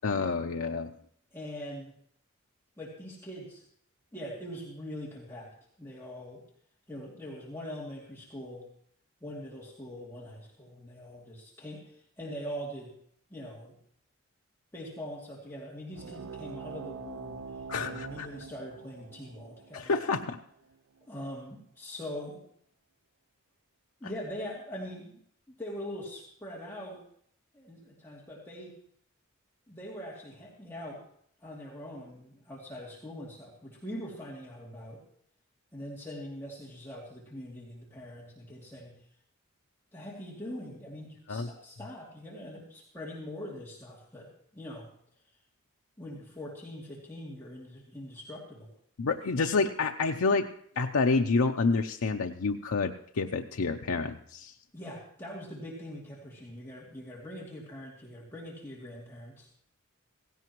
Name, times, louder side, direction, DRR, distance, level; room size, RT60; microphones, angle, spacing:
voice 1, 0.0-0.9 17.7-18.3 19.7-20.4 41.3-41.5 49.0-50.5 50.8-54.5, left 4 dB, 80° left, 4 dB, 0.6 m, -28 dB
voice 2, 1.3-1.9 2.8-3.6 4.1-5.5 5.8-6.4 6.9-8.7 9.2-12.9 13.3-13.8 14.7-17.5 17.8-19.9 21.1-22.4 24.0-25.2 25.5-27.0 27.5-28.7 29.7-31.0 31.4-35.0 35.7-39.0 39.9-44.9 46.0-48.7 54.7-59.5, equal, 10° left, -6 dB, 2.7 m, -42 dB
sound 1, 15.9-21.0, right 5 dB, 80° right, 0.5 m, -44 dB
17.0 x 16.5 x 3.1 m, 0.64 s
head